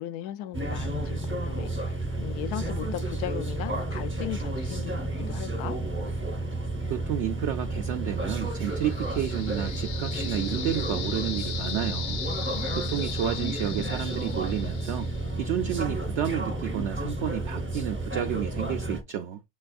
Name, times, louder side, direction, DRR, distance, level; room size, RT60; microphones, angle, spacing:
voice 1, 0.0-5.0 5.3-5.8 12.4-13.2, left 13 dB, 80° left, 1.1 m, -37 dB
sound 1, 0.5-19.0, right 2 dB, 10° right, 0.6 m, -31 dB
voice 2, 6.9-12.2 12.8-15.1 15.4-19.4, right 11 dB, 70° right, 0.6 m, -31 dB
sound 2, 8.4-15.3, left 8 dB, 60° left, 1.0 m, -38 dB
6.8 x 3.3 x 2.3 m
omnidirectional pair, 1.7 m